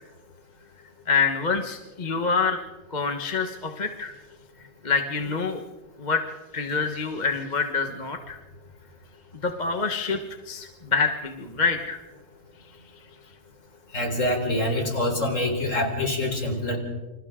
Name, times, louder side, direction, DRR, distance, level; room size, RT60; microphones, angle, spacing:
voice 1, 1.1-2.6 2.9-4.1 4.8-5.6 6.0-6.2 6.5-8.4 9.4-10.2 10.5-12.0, left 4 dB, 30° left, 5 dB, 1.4 m, -26 dB
voice 2, 13.9-16.8, left 1 dB, 55° left, 2 dB, 4.2 m, -25 dB
28.5 x 26.5 x 3.7 m, 1.2 s
omnidirectional pair, 1.6 m